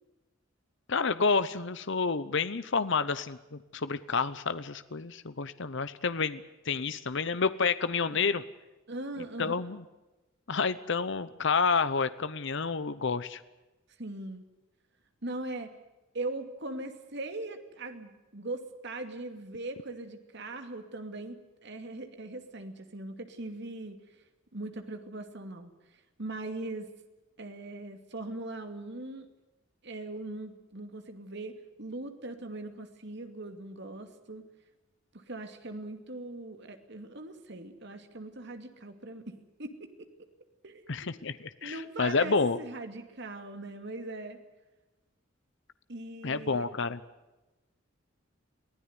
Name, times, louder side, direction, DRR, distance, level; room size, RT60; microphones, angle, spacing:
voice 1, 0.9-8.4 9.4-9.8 10.5-13.4 40.9-42.6 46.2-47.0, left 4 dB, 60° left, 14 dB, 0.9 m, -29 dB
voice 2, 8.9-9.6 14.0-14.4 15.2-15.7 16.1-24.0 24.5-25.7 26.2-26.9 27.4-29.3 29.8-34.4 35.1-40.1 40.6-41.2 41.6-44.4 45.9-46.6, right 2 dB, 60° right, 7 dB, 2.6 m, -40 dB
23.5 x 16.0 x 9.8 m, 1.1 s
head